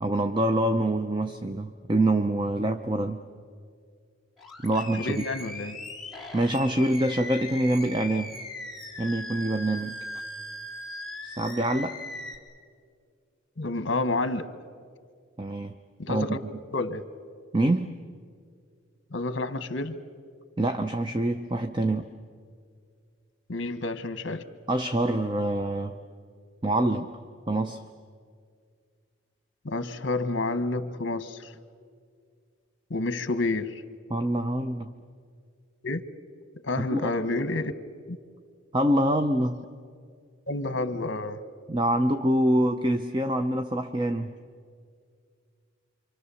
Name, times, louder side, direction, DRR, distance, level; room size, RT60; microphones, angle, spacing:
voice 1, 0.0-3.2 4.6-5.2 6.3-8.3 9.0-10.0 11.2-12.0 15.4-15.7 16.1-16.4 17.5-17.9 20.6-22.1 24.7-26.0 26.6-27.1 27.5-27.8 34.1-34.9 36.9-37.1 38.7-39.6 41.7-44.3, right 1 dB, 20° right, 0.6 m, -25 dB
Animal, 4.4-12.4, left 1 dB, ahead, 3.4 m, -39 dB
voice 2, 5.0-5.8 13.6-14.5 16.0-16.4 16.7-17.0 19.1-20.0 23.5-24.4 29.6-31.5 32.9-33.8 35.8-36.0 36.6-37.7 38.1-38.2 40.5-41.4, left 2 dB, 60° left, 1.2 m, -29 dB
27.5 x 25.0 x 7.0 m
head